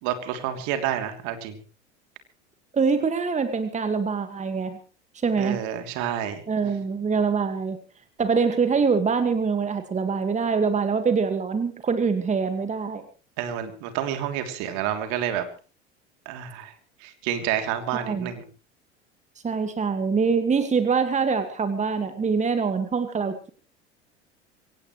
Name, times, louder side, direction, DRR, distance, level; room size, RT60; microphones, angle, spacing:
voice 1, 0.0-1.6 5.4-6.4 13.4-15.5 16.2-16.7 17.0-18.4, right 10 dB, 55° right, 7 dB, 3.1 m, -29 dB
voice 2, 2.7-4.8 5.1-5.6 6.5-7.8 8.2-13.0 17.9-18.3 19.4-23.5, right 5 dB, 20° right, 9 dB, 1.9 m, -24 dB
24.0 x 17.5 x 3.2 m, 0.37 s
figure-of-eight pair, 75°, 34 cm